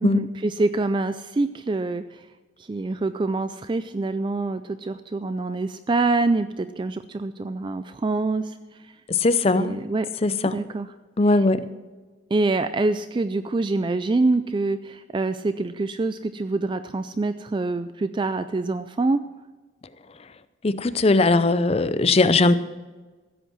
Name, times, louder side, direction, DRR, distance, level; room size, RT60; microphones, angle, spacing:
voice 1, 0.0-2.3 2.6-9.0 9.5-10.1 10.4-10.9 11.3-11.5 12.3-19.2, right 3 dB, 25° right, 11 dB, 0.3 m, -25 dB
voice 2, 9.1-9.8 10.2-10.6 11.2-11.7 20.6-22.6, left 3 dB, 30° left, 13 dB, 0.5 m, -19 dB
15.0 x 8.1 x 6.1 m, 1.3 s
head